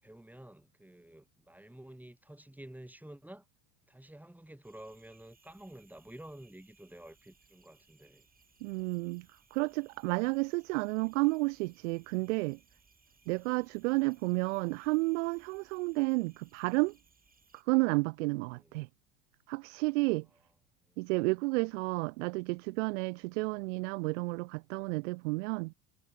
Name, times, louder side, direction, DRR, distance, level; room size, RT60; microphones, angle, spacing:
voice 1, 0.0-3.4 3.9-8.3 13.6-14.0 18.5-18.7 20.8-21.0 23.4-23.6, right 1 dB, 5° right, 4.4 m, -51 dB
sound 1, 4.6-17.6, right 5 dB, 20° right, 5.0 m, -67 dB
voice 2, 8.6-12.6 13.3-17.0 17.7-18.9 19.5-20.3 21.0-25.7, right 25 dB, 60° right, 0.7 m, -31 dB
figure-of-eight pair, 70°, 42 cm